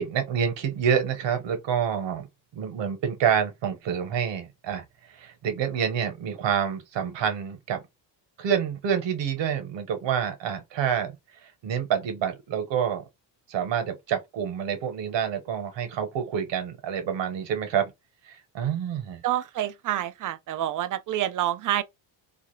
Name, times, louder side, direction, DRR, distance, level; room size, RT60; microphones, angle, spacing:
voice 1, 0.0-2.3 2.5-4.8 5.2-7.8 8.4-11.1 11.6-13.0 13.5-17.9 18.5-19.2, right 8 dB, 65° right, 1.1 m, -27 dB
voice 2, 19.2-21.8, right 12 dB, 45° right, 0.5 m, -27 dB
2.4 x 2.0 x 3.0 m
supercardioid pair, 70°, 46 cm